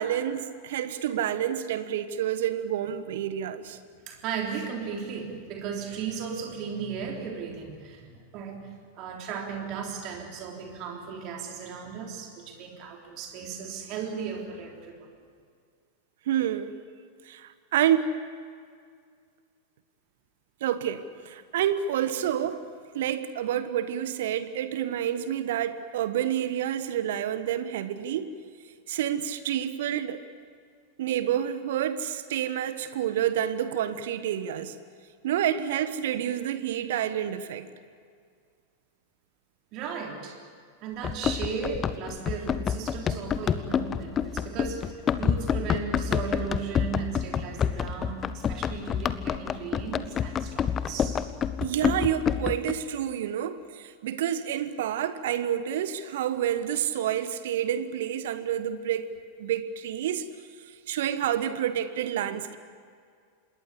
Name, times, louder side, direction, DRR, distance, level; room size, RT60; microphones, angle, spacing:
voice 1, 0.0-3.8 16.3-16.8 17.2-18.1 20.6-22.6 22.9-28.3 28.9-30.2 31.0-34.7 35.2-37.7 51.6-59.1 59.4-60.2 60.7-62.6, right 10 dB, 55° right, 12 dB, 1.3 m, -29 dB
voice 2, 4.1-15.1 39.7-40.4 40.8-51.2, right 6 dB, 40° right, 1 dB, 3.6 m, -36 dB
Run, 41.0-52.7, left 8 dB, 25° left, 1.1 m, -28 dB
27.0 x 21.0 x 8.4 m, 2.1 s
figure-of-eight pair, 90°, 0 cm